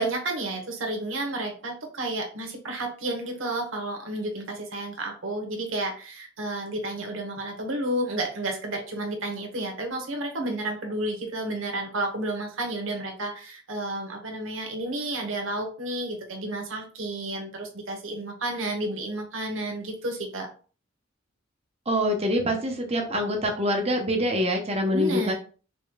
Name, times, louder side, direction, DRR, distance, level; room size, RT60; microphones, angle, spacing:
voice 1, 0.0-20.5 24.9-25.3, right 1 dB, 90° right, 2 dB, 1.2 m, -31 dB
voice 2, 21.9-25.3, equal, 30° right, 3 dB, 0.9 m, -25 dB
5.2 x 3.0 x 2.3 m, 0.39 s
head